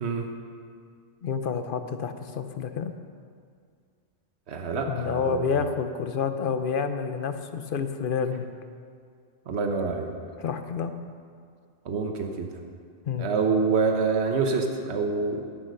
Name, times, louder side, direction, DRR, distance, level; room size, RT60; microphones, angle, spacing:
voice 1, 1.2-2.9 4.9-8.5 10.4-10.9 13.1-13.3, left 6 dB, 55° left, 9 dB, 0.9 m, -29 dB
voice 2, 4.5-5.4 9.5-10.1 11.8-12.5 13.2-15.5, right 4 dB, 70° right, 3 dB, 1.3 m, -26 dB
11.5 x 10.5 x 6.6 m, 2.2 s
omnidirectional pair, 1.2 m